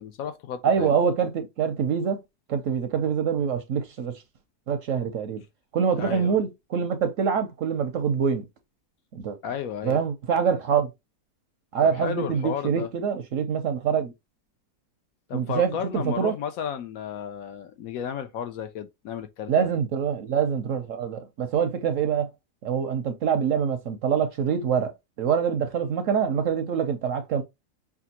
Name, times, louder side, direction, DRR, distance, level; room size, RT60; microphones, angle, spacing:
voice 1, 0.0-0.9 6.0-6.4 9.4-10.0 11.8-12.9 15.3-19.7, left 8 dB, 70° left, 0.9 m, -33 dB
voice 2, 0.6-2.2 2.5-4.2 4.7-5.4 5.7-8.4 9.1-9.4 9.8-10.9 11.7-14.1 15.3-16.3 19.5-22.3 22.6-24.9 25.2-27.4, right 7 dB, 70° right, 0.8 m, -25 dB
5.8 x 2.4 x 2.8 m
omnidirectional pair, 1.7 m